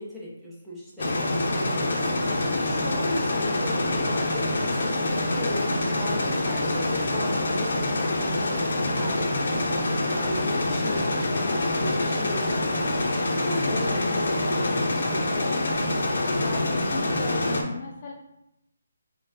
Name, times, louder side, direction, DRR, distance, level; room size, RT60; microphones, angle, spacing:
voice 1, 0.0-5.7 6.0-8.7 8.9-13.0 13.4-15.7, left 1 dB, ahead, -9 dB, 0.8 m, -37 dB
sound 1, 1.0-17.6, left 2 dB, 65° left, 0.8 m, -26 dB
voice 2, 16.4-18.1, left 3 dB, 35° left, 0 dB, 0.4 m, -36 dB
5.3 x 2.4 x 2.7 m, 0.84 s
hypercardioid pair, 165°, 0 cm